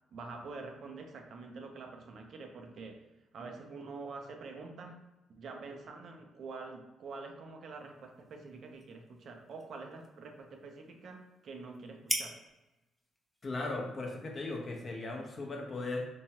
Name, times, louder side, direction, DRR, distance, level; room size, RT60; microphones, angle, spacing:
voice 1, 0.1-3.1 3.3-5.0 5.4-12.4, right 3 dB, 60° right, 3 dB, 0.5 m, -46 dB
sound 1, 7.8-15.5, equal, 5° left, 0.5 m, -45 dB
voice 2, 13.4-16.1, left 2 dB, 40° left, 1 dB, 0.7 m, -37 dB
3.0 x 2.2 x 2.8 m, 1.0 s
cardioid pair, 90°, 0 cm